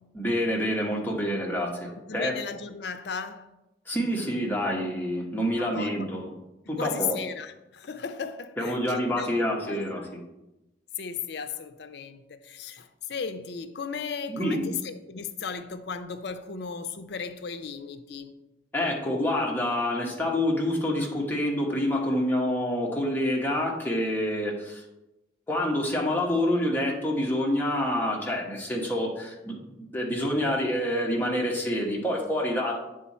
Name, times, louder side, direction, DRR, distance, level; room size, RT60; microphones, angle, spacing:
voice 1, 0.1-2.3 3.9-6.3 6.7-7.2 8.6-10.2 14.3-14.8 18.7-24.8 25.5-32.7, left 1 dB, 10° left, -2 dB, 1.1 m, -27 dB
voice 2, 2.1-3.5 5.6-5.9 6.7-9.3 9.6-9.8 11.0-18.4, left 6 dB, 70° left, 9 dB, 0.5 m, -35 dB
8.8 x 3.7 x 4.2 m, 0.97 s
head